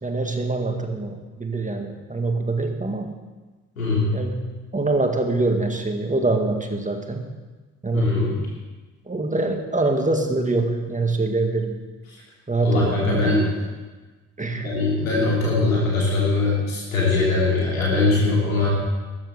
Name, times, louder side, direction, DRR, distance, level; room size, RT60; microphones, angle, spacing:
voice 1, 0.0-3.1 4.1-7.3 7.8-8.3 9.1-11.8 12.5-13.4 14.4-14.7, right 2 dB, 20° right, 4 dB, 2.1 m, -24 dB
voice 2, 3.8-4.1 7.9-8.4 12.6-13.5 14.5-18.7, left 3 dB, 90° left, -4 dB, 3.1 m, -21 dB
13.0 x 10.0 x 6.6 m, 1.3 s
figure-of-eight pair, 40°, 40 cm